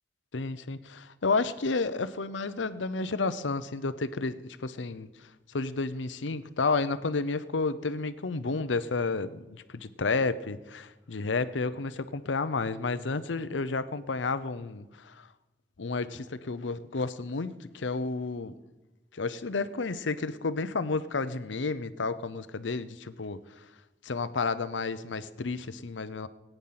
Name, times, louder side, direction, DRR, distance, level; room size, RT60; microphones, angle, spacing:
voice 1, 0.3-5.1 5.5-15.3 15.8-18.5 19.1-23.4 24.0-26.3, left 3 dB, 90° left, 13 dB, 0.7 m, -31 dB
21.0 x 9.2 x 5.8 m, 1.1 s
head